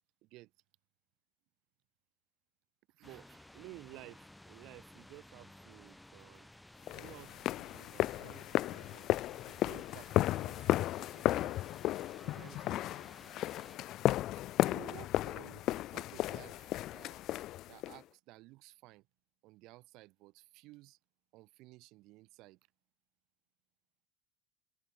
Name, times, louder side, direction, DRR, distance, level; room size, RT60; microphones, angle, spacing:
voice 1, 0.2-0.5 2.9-6.5 6.9-9.1 9.5-11.6 12.2-12.9 14.7-16.6 16.9-17.3 17.7-19.1 19.4-21.0 21.3-22.6, right 20 dB, 60° right, 2.2 m, -55 dB
sound 1, 3.0-13.8, left 1 dB, 5° left, 3.9 m, -57 dB
sound 2, 6.9-18.0, left 15 dB, 50° left, 0.6 m, -34 dB
hypercardioid pair, 75°, 0 cm